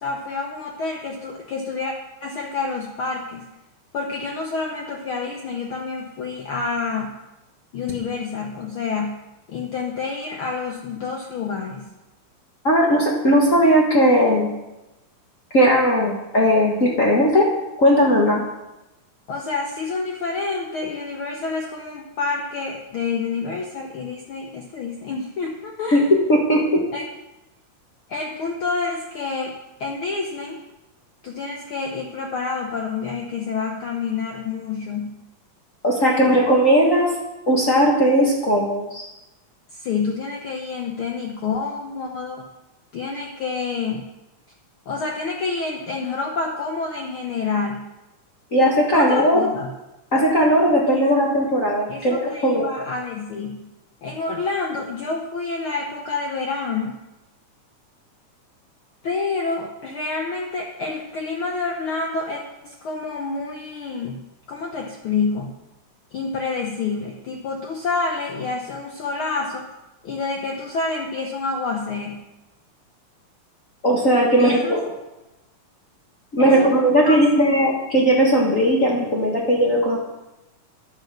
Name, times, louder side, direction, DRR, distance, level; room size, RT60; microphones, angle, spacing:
voice 1, 0.0-1.9 2.2-3.4 3.9-7.1 7.7-9.2 9.5-11.9 19.3-26.0 26.9-27.0 28.1-30.6 31.2-35.2 39.7-42.5 42.9-44.1 44.9-47.9 48.9-49.7 50.9-51.0 51.9-53.6 54.0-57.0 59.0-64.2 64.5-65.6 66.1-69.7 70.0-72.2 74.4-74.8 76.4-76.7 77.0-77.2, left 4 dB, 80° left, 1 dB, 1.1 m, -28 dB
voice 2, 12.6-14.5 15.5-17.5 17.8-18.4 25.9-26.0 26.3-26.8 35.8-37.1 37.5-39.1 48.5-49.5 50.1-52.7 73.8-74.8 76.3-80.0, equal, 40° left, -2 dB, 1.1 m, -17 dB
10.5 x 7.9 x 6.0 m, 0.97 s
omnidirectional pair, 3.6 m